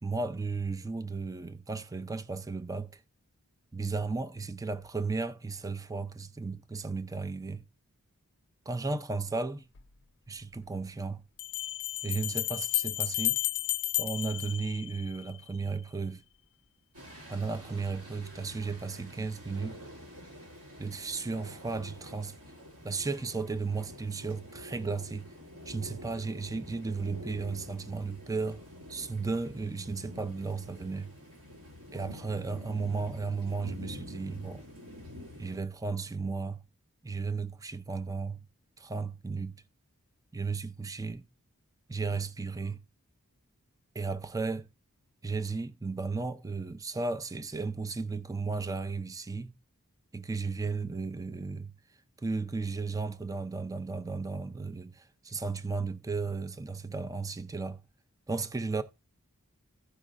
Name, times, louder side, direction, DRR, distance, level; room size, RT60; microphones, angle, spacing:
voice 1, 0.0-3.0 3.7-7.6 8.7-9.7 10.3-11.2 12.0-13.4 14.0-16.2 17.3-19.8 20.8-22.4 22.8-25.3 25.7-28.6 28.9-31.1 31.9-34.6 35.4-36.6 37.0-38.4 38.8-39.6 40.3-41.2 41.9-42.8 43.9-44.7 45.2-49.5 50.1-51.7 52.2-57.8 58.3-58.8, right 4 dB, 15° right, 0.4 m, -34 dB
Bell, 9.8-9.9 11.4-15.3, left 15 dB, 55° left, 0.5 m, -32 dB
sound 1, 16.9-35.6, left 1 dB, 80° right, 2.5 m, -48 dB
15.0 x 5.0 x 2.4 m
head